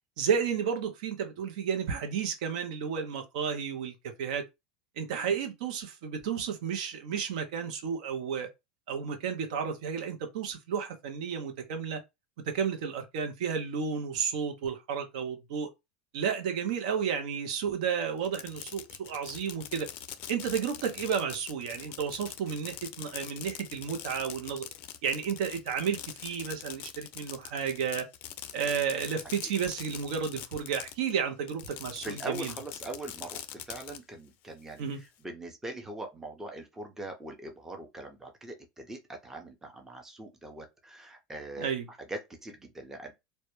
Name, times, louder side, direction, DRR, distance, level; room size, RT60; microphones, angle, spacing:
voice 1, 0.2-3.9 4.2-4.4 5.0-8.5 8.9-12.0 12.5-15.7 16.1-19.9 20.3-24.6 25.0-28.1 28.5-32.5 34.8-35.0 41.6-41.9, right 7 dB, 75° right, 0.6 m, -32 dB
Fireworks, 18.2-31.1 31.5-34.0, left 11 dB, 50° left, 0.3 m, -43 dB
voice 2, 32.0-43.1, right 2 dB, 10° right, 0.6 m, -42 dB
2.1 x 2.1 x 2.9 m
supercardioid pair, 110°, 4 cm